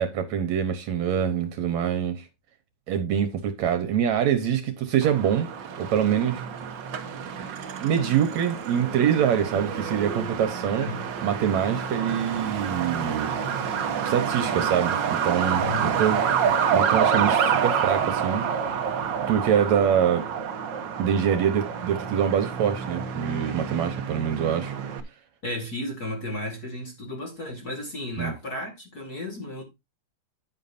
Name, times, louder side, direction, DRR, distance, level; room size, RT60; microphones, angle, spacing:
voice 1, 0.0-2.3 2.9-5.5 5.8-6.4 7.8-10.9 11.2-13.3 13.7-16.2 16.7-18.5 19.3-20.3 21.0-24.7 28.2-28.3, right 8 dB, 65° right, 2.1 m, -25 dB
Truck, 5.0-25.0, right 7 dB, 80° right, 1.0 m, -28 dB
voice 2, 10.8-11.2 15.6-16.0 16.4-16.5 25.4-29.6, left 1 dB, 35° left, 2.2 m, -34 dB
9.9 x 9.6 x 2.6 m
omnidirectional pair, 3.8 m